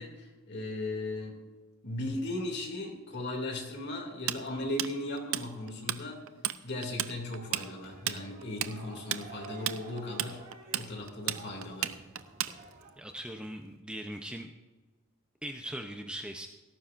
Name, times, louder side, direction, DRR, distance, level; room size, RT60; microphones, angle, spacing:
voice 1, 0.0-1.4 1.8-6.2 6.6-10.4 10.7-11.9, left 1 dB, 55° left, 1 dB, 2.6 m, -37 dB
Tools, 4.3-6.0 6.3-6.6 6.8-12.9, right 12 dB, 75° right, 0.6 m, -33 dB
sound 1, 7.8-12.9, right 3 dB, 45° right, 3.0 m, -50 dB
voice 2, 13.0-14.5 15.4-16.5, right 1 dB, 5° right, 3 dB, 0.7 m, -40 dB
17.5 x 14.0 x 2.6 m, 1.3 s
head